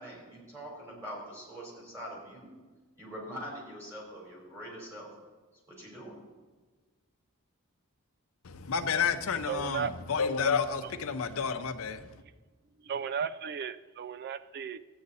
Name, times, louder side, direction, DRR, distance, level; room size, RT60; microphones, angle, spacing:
voice 1, 0.0-2.5 3.0-5.1 5.7-6.1, equal, 15° right, -3 dB, 3.8 m, -43 dB
voice 2, 8.4-12.2, left 6 dB, 65° left, 9 dB, 0.7 m, -30 dB
voice 3, 9.5-9.9 12.8-14.8, right 7 dB, 45° right, 15 dB, 0.3 m, -35 dB
13.5 x 8.8 x 4.1 m, 1.3 s
head